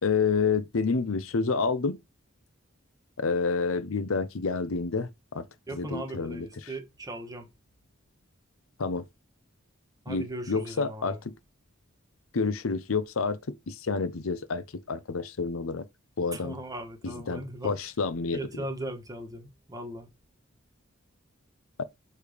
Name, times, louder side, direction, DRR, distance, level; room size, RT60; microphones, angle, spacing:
voice 1, 0.0-2.0 3.2-5.5 5.7-6.5 8.8-9.0 10.1-11.3 12.3-15.9 16.2-16.6 17.0-18.6 21.8-21.9, left 4 dB, 85° left, 0.7 m, -29 dB
voice 2, 5.7-7.5 10.0-11.2 16.3-17.7 18.3-20.1, right 1 dB, 20° right, 1.3 m, -38 dB
6.7 x 3.3 x 5.0 m
head